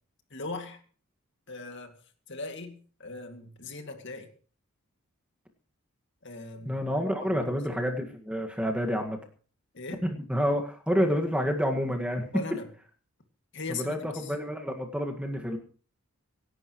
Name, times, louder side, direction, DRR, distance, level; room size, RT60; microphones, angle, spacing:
voice 1, 0.3-0.8 1.5-2.0 2.3-4.3 6.2-6.8 7.2-7.5 9.7-10.0 12.3-12.7 13.5-14.3, left 3 dB, 55° left, 5 dB, 2.3 m, -39 dB
voice 2, 6.6-9.2 10.0-12.3 13.7-15.6, equal, 5° right, 3 dB, 1.7 m, -29 dB
26.0 x 11.5 x 3.1 m, 0.41 s
head